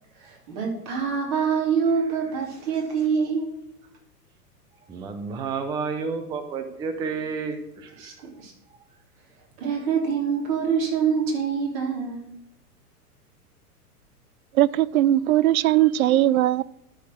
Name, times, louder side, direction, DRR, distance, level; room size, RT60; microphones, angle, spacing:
voice 1, 0.2-3.5 8.0-8.5 9.6-12.3, right 6 dB, 45° right, 3.1 m, -25 dB
voice 2, 4.9-7.9, right 5 dB, 10° right, 0.4 m, -30 dB
voice 3, 14.6-16.6, right 13 dB, 65° right, 0.5 m, -19 dB
12.0 x 4.3 x 6.2 m
figure-of-eight pair, 105°, 47 cm